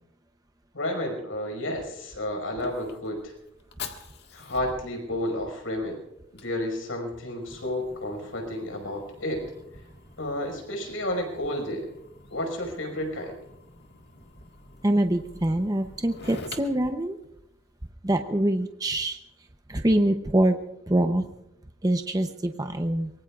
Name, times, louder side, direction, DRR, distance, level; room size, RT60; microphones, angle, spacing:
voice 1, 0.7-3.3 4.3-6.0 6.3-9.4 10.2-11.9 12.3-13.3, left 1 dB, 85° left, 3 dB, 5.2 m, -31 dB
Fire, 1.7-17.9, left 4 dB, 55° left, 1.7 m, -48 dB
voice 2, 14.8-17.2 18.0-19.2 19.7-20.6 20.9-21.3 21.8-23.1, right 1 dB, 20° right, 6 dB, 0.7 m, -24 dB
24.0 x 22.5 x 2.4 m, 0.87 s
head